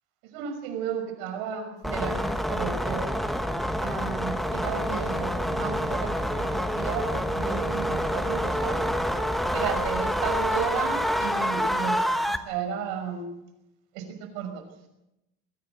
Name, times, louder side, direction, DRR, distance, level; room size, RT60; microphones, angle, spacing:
voice 1, 0.2-3.1 3.8-8.8 9.5-13.3 13.9-14.7, right 7 dB, 70° right, 6 dB, 5.8 m, -33 dB
sound 1, 1.8-12.4, equal, ahead, 0.9 m, -27 dB
22.5 x 16.0 x 8.0 m, 0.91 s
cardioid pair, 170°, 32 cm